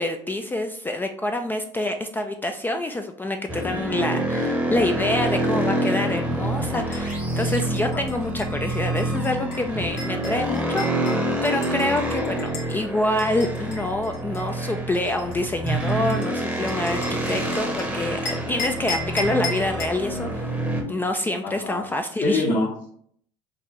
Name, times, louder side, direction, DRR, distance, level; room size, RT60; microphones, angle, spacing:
voice 1, 0.0-10.9 11.4-18.2 18.5-20.5 20.9-22.7, left 1 dB, 15° left, 5 dB, 0.3 m, -26 dB
sound 1, 3.5-20.8, right 1 dB, 10° right, 0.8 m, -27 dB
sound 2, 6.6-12.8 13.2-17.8 18.3-20.0, left 3 dB, 75° left, 1.2 m, -36 dB
voice 2, 21.4-21.8 22.2-22.9, left 2 dB, 55° left, -4 dB, 1.5 m, -26 dB
4.6 x 2.5 x 2.9 m, 0.63 s
hypercardioid pair, 85°, 15 cm